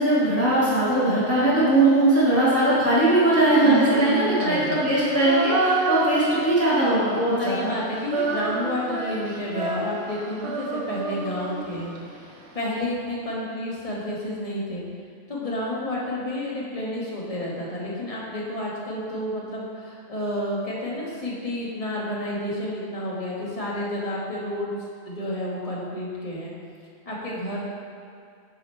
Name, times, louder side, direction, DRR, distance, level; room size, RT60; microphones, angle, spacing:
voice 1, 0.0-7.7, right 1 dB, 10° left, -10 dB, 1.3 m, -20 dB
Female singing, 3.5-7.4 7.7-12.0, right 3 dB, 70° right, 1.1 m, -28 dB
voice 2, 4.4-4.8 7.4-11.9 12.2-14.8 15.3-24.7 25.1-26.5 27.0-27.6, left 1 dB, 30° left, -5 dB, 1.2 m, -30 dB
6.6 x 5.0 x 4.4 m, 2.3 s
omnidirectional pair, 1.3 m